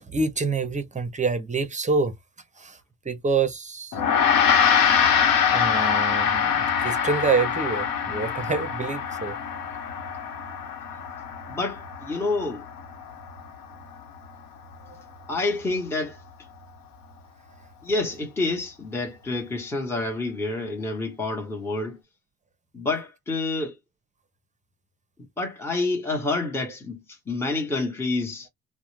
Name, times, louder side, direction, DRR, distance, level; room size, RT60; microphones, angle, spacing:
voice 1, 0.0-2.1 2.6-2.8 3.0-4.0 5.2-9.4 14.9-15.0, right 4 dB, 20° right, 0.6 m, -27 dB
Gong, 3.9-13.6, left 7 dB, 80° left, 0.9 m, -24 dB
voice 2, 11.5-12.7 15.3-16.2 17.8-22.0 22.7-23.8 25.4-28.5, left 3 dB, 5° left, 0.9 m, -28 dB
2.4 x 2.1 x 3.0 m
cardioid pair, 95°, 34 cm